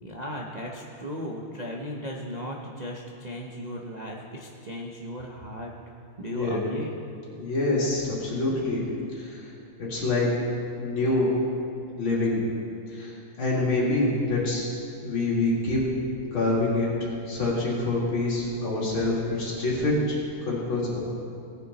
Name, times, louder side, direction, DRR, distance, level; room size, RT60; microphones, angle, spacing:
voice 1, 0.0-5.7 6.2-6.9, equal, 70° right, -2 dB, 0.4 m, -36 dB
voice 2, 6.3-6.6 7.4-8.8 9.1-9.5 9.8-10.3 10.8-11.3 11.9-12.5 12.9-14.7 15.0-15.8 16.3-21.0, left 2 dB, 65° left, -6 dB, 3.6 m, -26 dB
18.0 x 9.1 x 4.2 m, 2.6 s
omnidirectional pair, 2.4 m